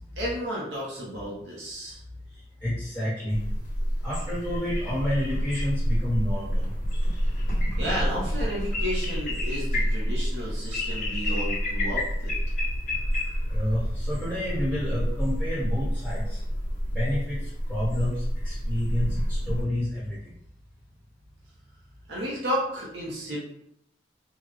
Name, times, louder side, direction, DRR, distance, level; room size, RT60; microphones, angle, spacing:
voice 1, 0.2-2.0 7.8-12.3 22.1-23.4, equal, 75° right, -5 dB, 0.9 m, -32 dB
voice 2, 2.6-3.4 4.0-6.6 13.5-16.4 16.9-17.4 17.7-18.1 18.4-20.2, left 1 dB, 5° left, -9 dB, 1.3 m, -29 dB
sound 1, 3.3-19.6, equal, 45° left, 1.0 m, -28 dB
3.6 x 2.3 x 3.2 m, 0.74 s
head